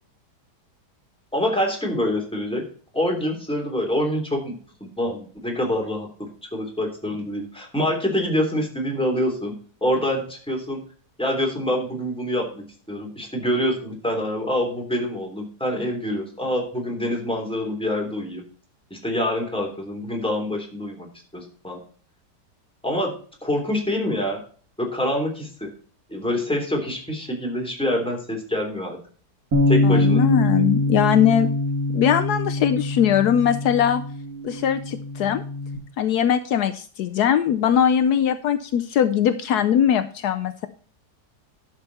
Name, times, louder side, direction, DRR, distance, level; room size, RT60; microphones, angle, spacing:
voice 1, 1.3-2.6 2.9-4.5 4.8-9.5 9.8-10.8 11.2-18.4 18.9-21.1 21.3-21.8 22.8-23.1 23.4-24.4 24.8-25.7 26.1-29.0 29.7-30.2, left 1 dB, 5° left, 0 dB, 3.1 m, -26 dB
Bass guitar, 29.5-35.8, left 2 dB, 65° right, 2.8 m, -23 dB
voice 2, 29.8-31.5 31.9-34.0 34.4-35.4 36.0-40.7, left 9 dB, 75° left, 10 dB, 1.2 m, -20 dB
11.5 x 6.7 x 4.1 m, 0.43 s
omnidirectional pair, 1.8 m